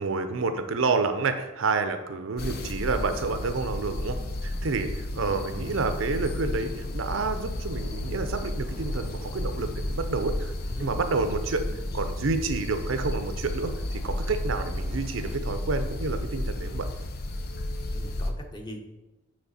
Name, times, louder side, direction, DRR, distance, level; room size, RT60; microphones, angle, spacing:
voice 1, 0.0-10.5 10.8-11.6 11.9-13.7 14.0-16.9, right 4 dB, 85° right, 8 dB, 0.6 m, -29 dB
voice 2, 2.3-2.8 5.3-5.8 10.6-11.0 17.9-18.8, equal, 25° left, 2 dB, 0.9 m, -42 dB
sound 1, 2.4-18.3, left 1 dB, 50° left, 0.6 m, -32 dB
sound 2, 7.8-15.4, right 1 dB, 5° right, 0.5 m, -49 dB
9.3 x 3.3 x 4.2 m, 1.0 s
head